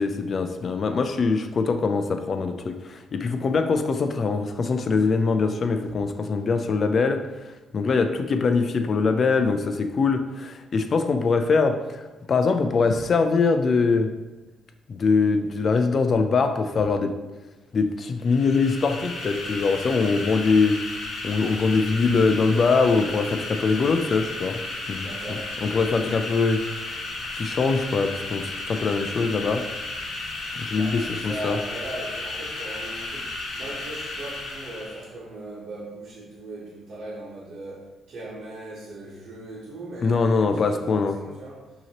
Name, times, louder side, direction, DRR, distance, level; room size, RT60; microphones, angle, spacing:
voice 1, 0.0-7.3 7.7-12.0 12.3-14.1 14.9-17.2 17.7-24.6 24.9-25.1 25.6-26.9 27.3-29.7 30.5-31.6 40.0-41.2, left 4 dB, 45° left, 7 dB, 0.4 m, -23 dB
sound 1, 18.2-35.1, left 2 dB, 65° left, 1.1 m, -34 dB
voice 2, 24.8-26.0 30.7-41.7, right 1 dB, 60° right, -8 dB, 1.1 m, -39 dB
5.5 x 2.9 x 2.9 m, 1.1 s
cardioid pair, 90°, 0 cm